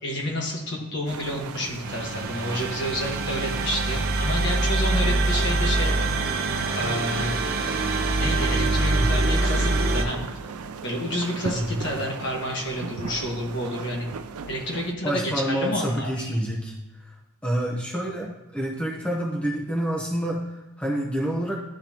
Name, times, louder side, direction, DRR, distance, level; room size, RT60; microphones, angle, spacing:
voice 1, 0.0-6.5 6.7-7.4 7.7-7.8 8.1-10.2 10.8-14.1 14.5-16.3, equal, 55° left, -1 dB, 1.5 m, -30 dB
sound 1, 1.1-14.9, right 5 dB, 90° right, 0.4 m, -37 dB
sound 2, 1.8-10.0, right 2 dB, 45° right, 0.8 m, -24 dB
voice 2, 15.0-16.7 17.0-17.1 17.4-20.4 20.8-21.6, equal, 5° left, -2 dB, 0.7 m, -27 dB
11.5 x 3.9 x 2.9 m, 1.0 s
head